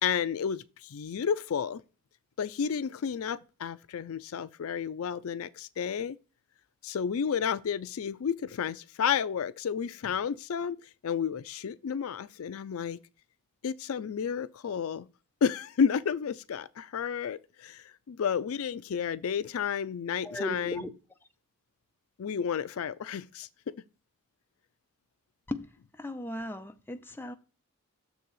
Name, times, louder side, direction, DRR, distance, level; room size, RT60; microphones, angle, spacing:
voice 1, 0.0-1.8 2.4-6.2 6.8-10.8 11.0-13.0 13.6-15.1 15.4-20.8 22.2-23.7, left 7 dB, 70° left, 0.4 m, -31 dB
voice 2, 20.2-20.9 25.5-25.7 26.0-27.3, left 1 dB, 10° left, 0.6 m, -36 dB
6.7 x 4.0 x 6.3 m
head